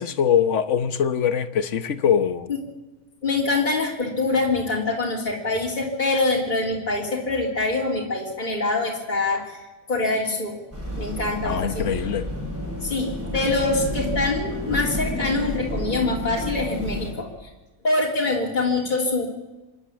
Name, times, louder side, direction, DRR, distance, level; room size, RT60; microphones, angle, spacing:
voice 1, 0.0-2.5 11.4-12.3, left 8 dB, 60° left, 12 dB, 1.4 m, -22 dB
voice 2, 3.2-9.6 9.9-10.6 11.0-11.9 12.8-17.5 17.8-19.2, left 3 dB, 30° left, -3 dB, 3.4 m, -24 dB
sound 1, 10.7-17.1, equal, 10° right, 6.7 m, -30 dB
26.5 x 11.5 x 8.6 m, 1.1 s
omnidirectional pair, 1.5 m